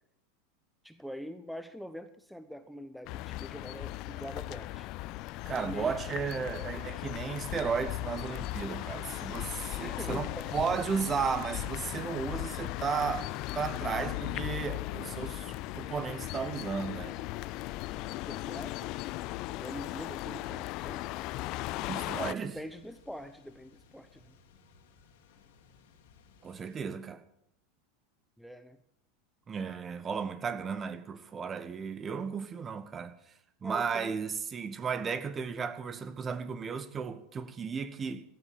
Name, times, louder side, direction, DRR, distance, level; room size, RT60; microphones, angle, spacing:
voice 1, 0.8-4.9 5.5-5.9 9.8-10.6 18.3-19.0 19.6-21.0 22.4-24.3 28.4-28.8 33.6-34.1, equal, ahead, 0.9 m, -44 dB
sound 1, 3.1-22.3, left 18 dB, 50° left, 0.5 m, -37 dB
voice 2, 5.4-17.2 21.7-22.6 26.4-27.2 29.5-33.2 33.6-38.2, right 6 dB, 25° right, 1.5 m, -34 dB
sound 2, 13.8-26.8, left 4 dB, 70° left, 2.6 m, -54 dB
16.5 x 10.5 x 7.1 m
hypercardioid pair, 90°, 0 cm